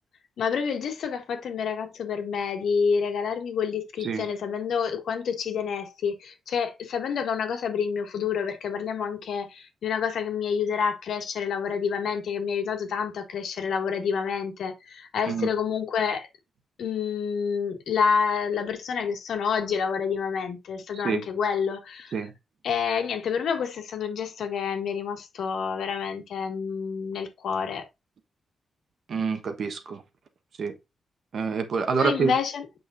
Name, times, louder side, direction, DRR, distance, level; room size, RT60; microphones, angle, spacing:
voice 1, 0.4-16.3 16.8-22.2 22.6-27.9 32.0-32.7, left 6 dB, 80° left, 1.7 m, -28 dB
voice 2, 29.1-30.0 30.6-30.7 31.3-32.3, right 5 dB, 55° right, 1.2 m, -27 dB
8.1 x 5.5 x 2.6 m
wide cardioid pair, 130°, 0 cm